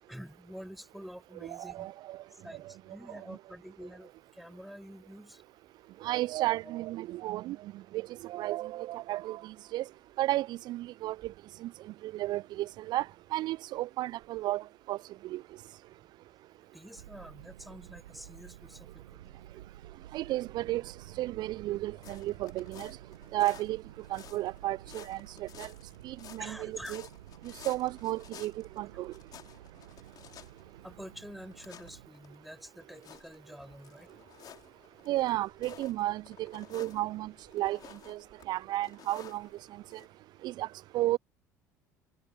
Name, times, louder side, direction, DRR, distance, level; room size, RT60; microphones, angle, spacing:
voice 1, 0.1-1.9 2.3-5.4 16.7-19.4 26.4-27.0 30.8-34.1, equal, ahead, 7.1 m, -47 dB
voice 2, 1.5-2.2 6.0-7.6 7.9-9.8 10.2-11.2 11.6-11.7 12.0-15.0 15.3-15.4 20.1-22.9 23.3-23.8 24.1-25.7 26.0-27.0 27.6-29.1 35.1-36.2 36.5-37.8 38.1-38.2 38.5-39.5 39.9-40.0 40.4-40.7 40.9-41.2, right 16 dB, 50° right, 0.4 m, -33 dB
sound 1, 16.9-32.1, right 13 dB, 75° right, 1.4 m, -52 dB
sound 2, 21.9-40.1, left 10 dB, 45° left, 4.3 m, -54 dB
figure-of-eight pair, 65°, 9 cm